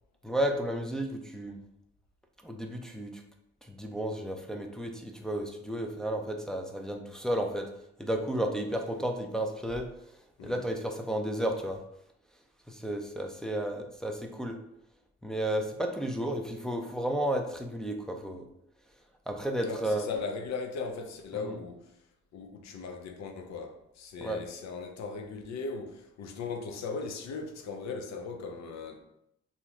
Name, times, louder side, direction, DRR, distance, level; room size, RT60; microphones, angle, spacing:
voice 1, 0.2-1.6 2.4-3.2 3.6-7.7 8.0-9.9 10.4-11.8 12.7-14.6 15.2-18.5 19.3-20.1 21.3-21.5 24.2-24.4, right 1 dB, ahead, 0.3 m, -32 dB
voice 2, 19.6-21.9 22.3-29.0, left 4 dB, 60° left, 0.6 m, -38 dB
2.9 x 2.1 x 3.6 m
cardioid pair, 90°, 30 cm